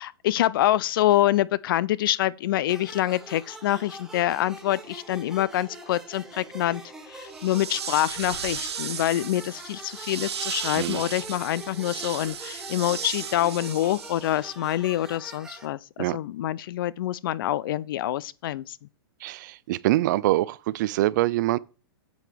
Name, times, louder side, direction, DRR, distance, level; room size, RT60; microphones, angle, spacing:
voice 1, 0.0-6.8 7.1-15.8 16.1-18.8, left 13 dB, 55° left, 0.4 m, -26 dB
sound 1, 2.7-15.6, right 2 dB, 5° right, 1.2 m, -44 dB
sound 2, 7.3-14.5, right 7 dB, 90° right, 1.5 m, -35 dB
voice 2, 19.2-21.6, right 16 dB, 45° right, 0.4 m, -24 dB
8.0 x 7.1 x 3.4 m
hypercardioid pair, 145°, 13 cm